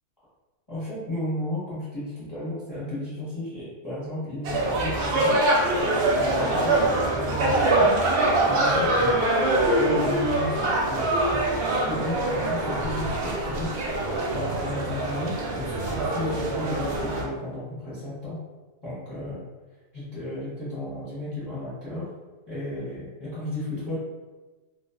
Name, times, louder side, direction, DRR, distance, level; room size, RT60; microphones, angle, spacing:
voice 1, 0.7-5.3 5.8-7.9 8.5-9.2 9.8-13.7 14.3-18.4 18.8-19.4 19.9-22.1 22.5-24.0, left 1 dB, 20° left, -11 dB, 0.7 m, -34 dB
sound 1, 4.4-17.2, right 2 dB, 85° right, 0.5 m, -24 dB
2.3 x 2.3 x 2.3 m, 1.2 s
omnidirectional pair, 1.7 m